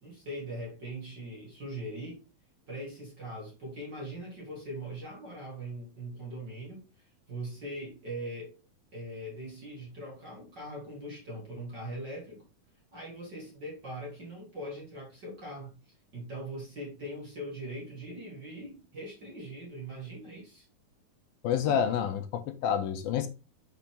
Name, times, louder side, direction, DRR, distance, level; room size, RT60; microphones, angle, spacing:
voice 1, 0.0-2.2 2.7-8.6 8.9-12.5 12.9-15.8 16.1-20.7, right 1 dB, 40° right, 1.8 m, -41 dB
voice 2, 21.4-23.3, left 8 dB, 80° left, 2.5 m, -28 dB
5.9 x 5.7 x 3.5 m
omnidirectional pair, 4.3 m